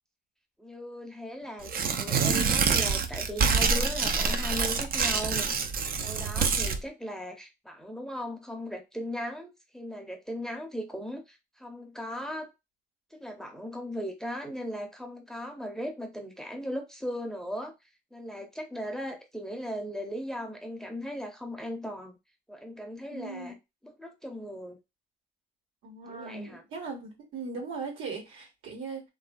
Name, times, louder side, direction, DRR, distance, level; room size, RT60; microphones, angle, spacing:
voice 1, 0.6-12.5 13.1-17.7 18.1-22.2 22.5-23.6 23.8-24.8 26.1-26.6, equal, 5° left, 0.6 m, -38 dB
Tearing, 1.6-6.8, right 5 dB, 50° right, 0.5 m, -26 dB
voice 2, 23.1-23.5 25.8-29.0, right 4 dB, 85° right, 1.4 m, -39 dB
2.8 x 2.6 x 2.2 m
cardioid pair, 90°, 20 cm